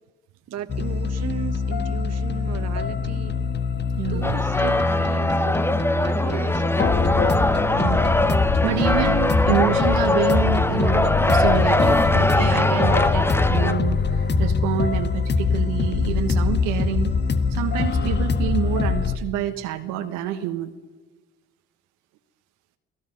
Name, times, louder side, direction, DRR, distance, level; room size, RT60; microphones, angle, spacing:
voice 1, 0.5-3.4 4.1-7.3 17.9-18.3, right 9 dB, 55° right, 11 dB, 1.5 m, -36 dB
sound 1, 0.7-19.2, left 4 dB, 35° left, 1.4 m, -23 dB
voice 2, 4.0-4.3 7.8-17.1 17.5-20.7, right 12 dB, 75° right, 7 dB, 1.4 m, -28 dB
sound 2, 4.2-13.7, left 1 dB, 5° left, 1.1 m, -22 dB
sound 3, 9.4-15.1, left 2 dB, 60° left, 3.1 m, -41 dB
29.0 x 18.0 x 5.4 m, 1.2 s
hypercardioid pair, 55°, 31 cm